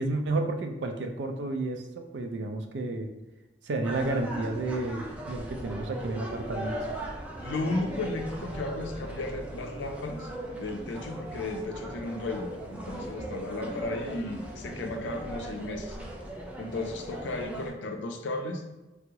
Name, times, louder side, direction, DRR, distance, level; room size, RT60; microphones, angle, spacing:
voice 1, 0.0-3.1 3.6-6.8, right 2 dB, 75° right, 5 dB, 0.4 m, -31 dB
sound 1, 3.8-17.7, right 1 dB, 10° right, 0.4 m, -39 dB
voice 2, 7.4-10.3 10.6-16.0 16.6-18.6, left 2 dB, 85° left, 4 dB, 0.4 m, -34 dB
3.4 x 2.0 x 2.8 m, 1.1 s
head